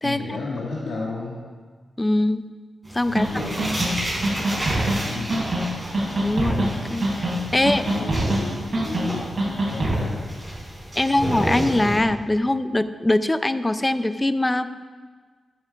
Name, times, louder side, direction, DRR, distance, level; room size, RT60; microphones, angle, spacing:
voice 1, 0.0-1.4 3.0-4.1 5.0-5.6 7.5-10.2, left 2 dB, 85° left, -6 dB, 2.2 m, -33 dB
voice 2, 2.0-2.4 2.9-3.3 6.2-7.8 11.0-14.7, left 1 dB, 15° left, 12 dB, 0.5 m, -22 dB
sound 1, 2.9-12.0, right 1 dB, 15° right, 3.7 m, -32 dB
sound 2, 3.2-3.3 3.6-3.9 4.2-5.0 5.3-5.6 5.9-6.7 7.0-7.4 7.7-8.4 8.7-9.1 9.4-10.0, right 1 dB, 50° right, 4.3 m, -23 dB
12.0 x 9.7 x 5.0 m, 1.5 s
wide cardioid pair, 100°, 0 cm